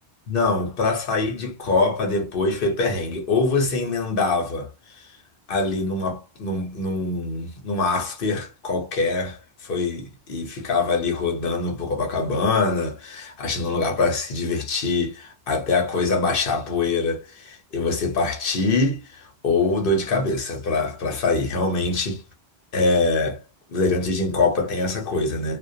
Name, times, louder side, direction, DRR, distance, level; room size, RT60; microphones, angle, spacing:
voice 1, 0.3-4.7 5.5-22.2 22.7-23.4 23.7-25.6, left 3 dB, 60° left, 0.9 m, -24 dB
2.2 x 2.2 x 2.6 m
omnidirectional pair, 1.0 m